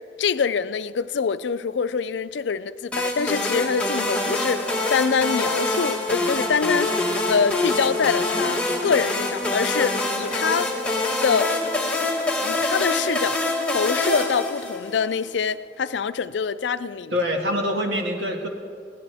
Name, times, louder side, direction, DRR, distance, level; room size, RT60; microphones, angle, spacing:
voice 1, 0.2-7.0 7.3-10.7 11.2-11.6 12.4-13.4 13.7-17.1, left 6 dB, 80° left, 0.4 m, -25 dB
sound 1, 2.9-15.1, left 2 dB, 5° left, 1.5 m, -25 dB
voice 2, 17.1-18.5, equal, 90° right, 1.9 m, -25 dB
20.0 x 17.0 x 3.5 m
head